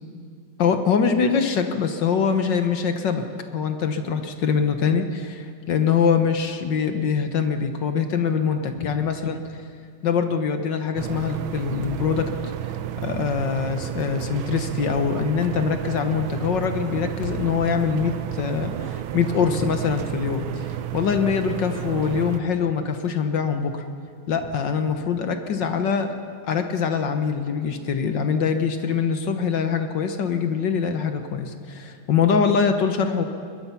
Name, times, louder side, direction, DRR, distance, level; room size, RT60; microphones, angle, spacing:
voice 1, 0.6-3.2 3.5-9.4 10.0-12.3 13.0-23.8 24.3-26.1 26.5-33.2, left 6 dB, 60° left, 7 dB, 1.7 m, -23 dB
sound 1, 8.8-9.3 9.6-9.7 11.6-12.6 14.3-15.2 17.1-18.0, left 3 dB, 80° left, 2.4 m, -41 dB
sound 2, 11.0-22.4, right 12 dB, 75° right, 1.5 m, -31 dB
22.0 x 21.0 x 5.8 m, 2.2 s
omnidirectional pair, 2.4 m